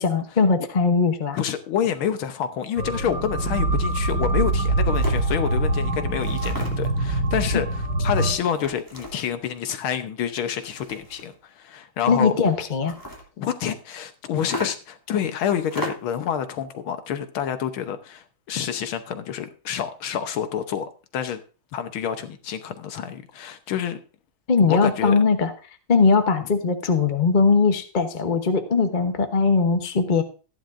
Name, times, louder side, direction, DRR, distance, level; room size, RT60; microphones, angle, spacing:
voice 1, 0.0-1.4 12.1-12.9 24.5-25.5 25.9-30.2, left 4 dB, 35° left, 7 dB, 0.8 m, -20 dB
voice 2, 1.4-12.3 13.4-21.4 21.7-24.0 24.6-25.2, left 9 dB, 85° left, 9 dB, 1.8 m, -28 dB
sound 1, 2.8-8.3, right 2 dB, 60° right, 7.2 m, -24 dB
sound 2, 4.9-5.3 6.2-7.0 8.3-9.4 10.4-11.4 12.7-13.3 14.4-15.0 15.6-16.2, left 1 dB, 10° left, 2.8 m, -35 dB
15.0 x 10.0 x 2.6 m, 0.35 s
omnidirectional pair, 2.2 m